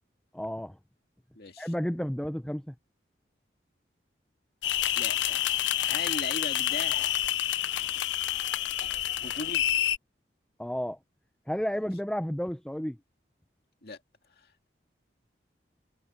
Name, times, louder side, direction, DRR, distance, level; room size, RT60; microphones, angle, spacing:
voice 1, 0.3-0.8 1.6-2.7 10.6-11.0 11.5-13.0, equal, 5° left, 0.5 m, -32 dB
voice 2, 1.4-1.7 5.0-7.3 7.9-8.4 9.2-9.7 13.8-14.0 14.4-14.7, left 2 dB, 55° left, 2.4 m, -40 dB
sound 1, 4.6-10.0, left 13 dB, 80° left, 0.4 m, -28 dB
head